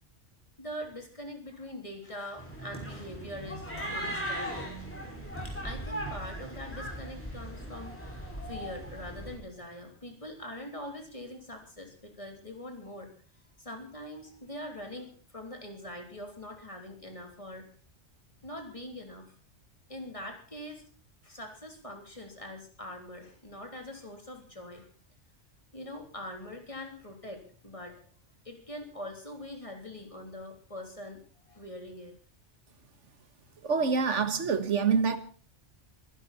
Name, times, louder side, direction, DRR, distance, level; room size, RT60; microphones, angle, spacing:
voice 1, 0.6-4.9 5.6-8.0 8.4-13.1 13.6-17.7 18.4-19.2 19.9-20.8 21.2-24.9 25.7-28.0 28.4-32.2, left 1 dB, 30° left, 2 dB, 3.5 m, -43 dB
sound 1, 2.4-9.4, right 1 dB, 10° left, 5.5 m, -38 dB
voice 2, 33.6-35.2, right 5 dB, 90° right, 10 dB, 1.7 m, -26 dB
24.5 x 11.5 x 4.2 m, 0.39 s
omnidirectional pair, 1.2 m